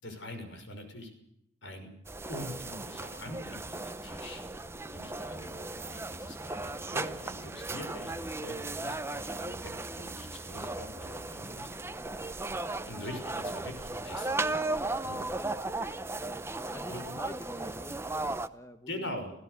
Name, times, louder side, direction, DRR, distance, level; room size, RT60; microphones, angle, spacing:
voice 1, 0.0-1.1 1.6-1.9 2.3-4.4 4.9-11.7 12.9-14.5 15.0-15.2 16.9-17.2 18.9-19.3, left 1 dB, 80° left, 6 dB, 6.1 m, -43 dB
sound 1, 2.1-18.5, right 2 dB, 15° right, 0.8 m, -36 dB
voice 2, 11.7-12.2 12.5-12.8 14.6-14.9 15.2-15.3 16.7-19.1, equal, 15° left, 8 dB, 1.2 m, -48 dB
28.5 x 17.0 x 6.8 m, 0.78 s
head